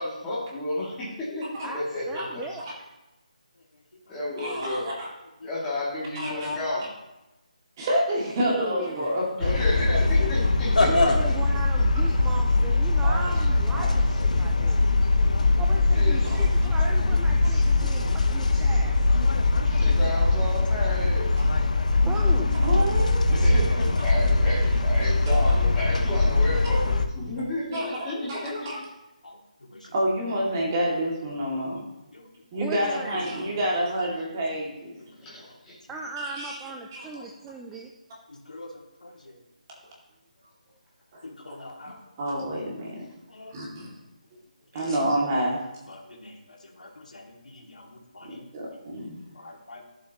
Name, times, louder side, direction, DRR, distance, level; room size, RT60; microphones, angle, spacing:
voice 1, 0.0-2.6 4.1-4.9 5.4-6.8 9.4-10.9 15.9-16.4 19.6-21.3 23.3-28.7 35.2-35.8, left 1 dB, 10° left, -8 dB, 2.6 m, -32 dB
voice 2, 1.6-2.6 8.4-9.2 10.9-14.8 15.6-19.0 22.1-22.5 32.6-33.2 35.9-37.9, right 3 dB, 5° right, 0 dB, 0.4 m, -37 dB
voice 3, 4.4-5.1 6.1-6.5 7.8-9.5 13.0-13.9 16.2-16.4 21.4-21.5 22.6-23.2 25.3-25.4 27.7-28.8 29.9-31.9 32.5-34.9 36.2-36.6 36.9-37.1 41.1-41.2 41.5-41.6 42.2-43.0 43.5-43.9 44.7-45.7 48.2-49.5, equal, 25° right, -4 dB, 2.5 m, -29 dB
sound 1, 9.4-27.1, left 2 dB, 65° left, 0.9 m, -22 dB
voice 4, 10.8-11.2 18.0-18.1 29.2-29.4 29.7-29.8 32.1-32.2 38.5-38.7 39.0-39.1 41.2-41.9 43.3-43.5 46.2-46.3 46.8-47.2 47.6-48.4 49.4-49.8, left 2 dB, 80° left, 0 dB, 2.4 m, -29 dB
11.5 x 7.7 x 3.1 m, 1.0 s
figure-of-eight pair, 165°, 4 cm